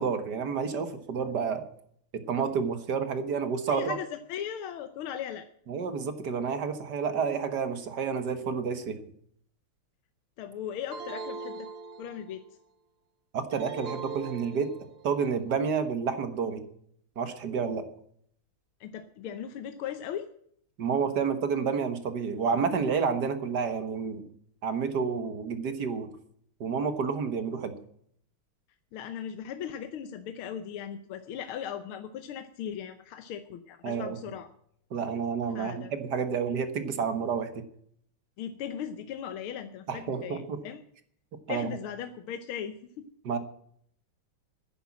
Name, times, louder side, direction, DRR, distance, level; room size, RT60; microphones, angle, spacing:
voice 1, 0.0-1.6 2.1-4.0 5.7-9.0 13.3-14.7 15.0-16.6 17.2-17.8 20.8-24.3 24.6-26.1 26.6-27.7 33.8-34.2 34.9-37.6 39.9-40.6 41.5-41.7 43.2-43.4, right 6 dB, 55° right, 10 dB, 1.8 m, -30 dB
voice 2, 3.7-5.5 10.4-11.7 12.0-12.4 18.8-20.3 28.9-34.5 35.5-35.9 38.4-40.8 41.5-43.1, left 9 dB, 85° left, 9 dB, 1.7 m, -38 dB
sound 1, 10.9-12.5 13.5-15.1, right 4 dB, 90° right, 2.9 m, -40 dB
10.0 x 10.0 x 8.5 m, 0.65 s
omnidirectional pair, 2.3 m